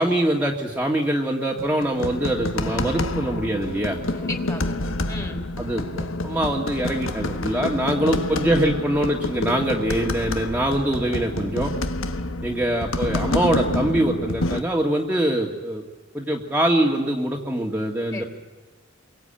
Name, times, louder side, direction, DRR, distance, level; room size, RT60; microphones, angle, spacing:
voice 1, 0.0-4.0 5.6-11.7 12.4-15.8 16.1-18.2, right 1 dB, 10° right, -1 dB, 1.9 m, -23 dB
sound 1, 1.6-14.6, left 2 dB, 75° left, 1.5 m, -28 dB
voice 2, 4.1-5.4 18.1-18.3, left 2 dB, 15° left, 5 dB, 3.2 m, -35 dB
28.0 x 23.5 x 8.9 m, 1.2 s
head